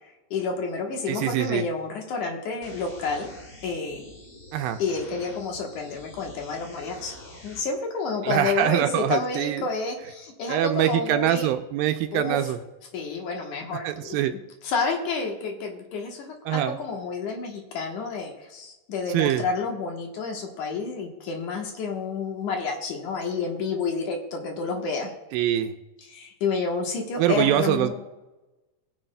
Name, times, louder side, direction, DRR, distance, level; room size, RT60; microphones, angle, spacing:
voice 1, 0.3-3.3 3.6-4.1 4.8-7.2 7.4-11.5 12.1-12.4 12.9-14.2 14.6-25.1 26.1-27.9, left 4 dB, 65° left, 1 dB, 2.4 m, -30 dB
voice 2, 1.1-1.7 4.5-4.8 8.2-9.6 10.5-12.6 13.8-14.4 16.5-16.8 19.1-19.5 25.3-25.7 27.2-27.9, right 12 dB, 85° right, 8 dB, 2.3 m, -24 dB
sound 1, 2.6-7.6, left 1 dB, 45° left, 1.0 m, -46 dB
20.5 x 7.7 x 2.2 m, 1.1 s
omnidirectional pair, 4.2 m